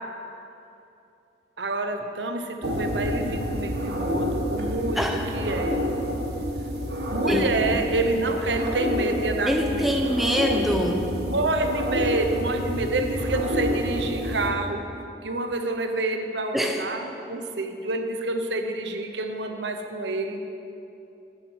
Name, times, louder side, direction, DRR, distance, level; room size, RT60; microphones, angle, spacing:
voice 1, 1.6-5.8 7.1-10.1 11.3-14.8 15.2-20.4, right 2 dB, 75° right, 5 dB, 1.0 m, -28 dB
sound 1, 2.6-14.5, equal, 60° right, 1.6 m, -28 dB
voice 2, 9.5-11.1 16.5-16.9, equal, ahead, 2 dB, 0.8 m, -24 dB
10.5 x 7.9 x 8.1 m, 2.7 s
head